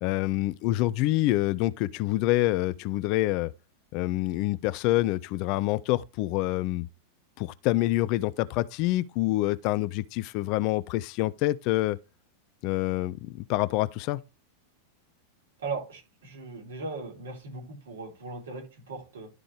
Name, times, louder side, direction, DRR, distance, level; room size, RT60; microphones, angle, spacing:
voice 1, 0.0-3.5 3.9-6.9 7.4-12.0 12.6-14.2, left 17 dB, 45° left, 0.4 m, -26 dB
voice 2, 15.6-19.3, right 3 dB, 65° right, 3.4 m, -38 dB
12.0 x 4.9 x 3.3 m
figure-of-eight pair, 90°, 0 cm